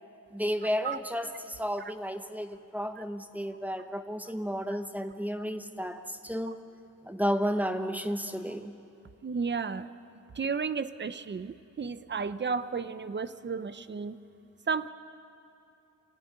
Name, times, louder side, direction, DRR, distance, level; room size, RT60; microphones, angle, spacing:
voice 1, 0.3-6.6 7.0-8.8, equal, 5° right, 8 dB, 1.0 m, -32 dB
voice 2, 9.2-9.9 10.3-14.2 14.7-14.9, right 5 dB, 35° right, 13 dB, 0.7 m, -33 dB
25.0 x 16.0 x 9.8 m, 2.6 s
wide cardioid pair, 145°, 32 cm